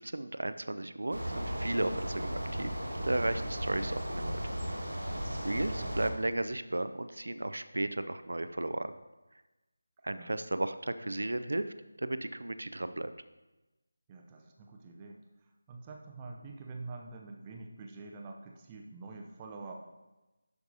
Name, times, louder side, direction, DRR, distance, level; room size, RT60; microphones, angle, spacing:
voice 1, 0.0-2.7 3.0-4.4 5.4-9.0 10.0-11.7 12.0-13.1, right 1 dB, 65° right, 11 dB, 0.5 m, -34 dB
sound 1, 1.1-6.1, equal, 85° right, 1.5 m, -36 dB
voice 2, 5.4-5.9 10.1-10.4 14.1-15.2 15.7-19.7, right 3 dB, 20° right, 1 dB, 0.6 m, -46 dB
11.5 x 4.6 x 2.7 m, 1.1 s
figure-of-eight pair, 160°, 0 cm